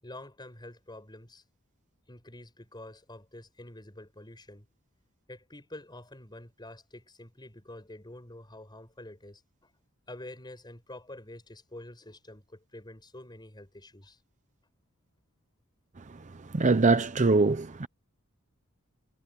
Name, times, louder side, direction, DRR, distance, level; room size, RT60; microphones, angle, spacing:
voice 1, 0.0-1.4 2.1-4.7 5.3-9.7 10.1-14.2, left 1 dB, 20° left, 6.7 m, -47 dB
voice 2, 16.4-17.9, right 3 dB, 35° right, 0.7 m, -23 dB
head